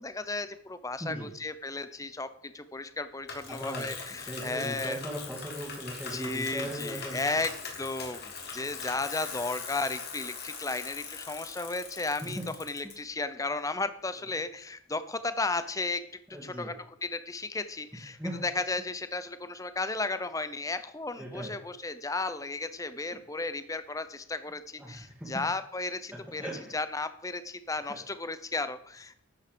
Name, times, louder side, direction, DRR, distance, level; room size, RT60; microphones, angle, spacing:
voice 1, 0.0-5.0 6.1-7.5 7.8-16.0 16.4-16.7 17.0-29.2, left 3 dB, 15° left, 12 dB, 0.6 m, -34 dB
voice 2, 1.0-1.3 3.5-7.2 12.2-12.5 12.8-12.9 16.3-16.7 18.2-18.4 21.2-21.5 24.8-25.5 26.4-26.7 27.9-28.0, right 1 dB, 5° right, -6 dB, 2.1 m, -38 dB
Bicycle, 3.3-12.9, left 5 dB, 50° left, 2.7 m, -41 dB
12.0 x 8.6 x 5.1 m, 0.66 s
head